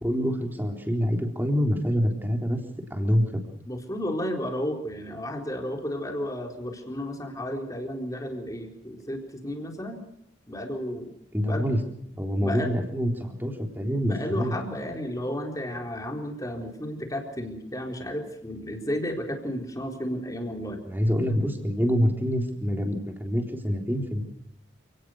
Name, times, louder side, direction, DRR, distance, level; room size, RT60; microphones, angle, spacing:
voice 1, 0.0-2.6 2.9-3.4 11.3-11.8 12.2-14.5 20.9-24.2, equal, 10° right, 3 dB, 3.8 m, -26 dB
voice 2, 3.7-10.0 10.5-11.1 11.5-11.6 12.4-12.7 14.0-20.8, equal, 20° left, 2 dB, 4.2 m, -33 dB
29.0 x 18.5 x 6.4 m, 0.72 s
head